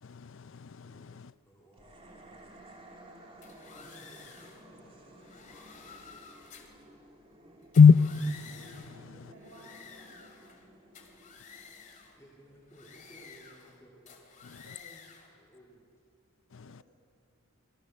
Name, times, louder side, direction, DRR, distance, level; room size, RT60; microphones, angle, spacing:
voice 1, 0.0-1.3 7.7-9.3 14.4-14.8 16.5-16.8, left 5 dB, 60° left, 17 dB, 0.5 m, -24 dB
voice 2, 0.8-1.1 1.4-2.7 3.6-5.7 6.0-6.7 12.1-14.3 15.4-15.8, right 1 dB, 15° left, -4 dB, 3.2 m, -59 dB
sound 1, 1.7-13.1, right 1 dB, 25° right, 2.8 m, -55 dB
sound 2, 3.4-4.6 5.2-6.8 7.6-9.0 9.4-10.6 10.9-12.2 12.7-13.8 14.1-15.3, left 6 dB, 35° left, 2.7 m, -52 dB
voice 3, 9.1-10.4 14.6-15.0 16.6-16.8, equal, 70° right, -3 dB, 4.6 m, -56 dB
25.5 x 20.0 x 6.6 m, 2.5 s
head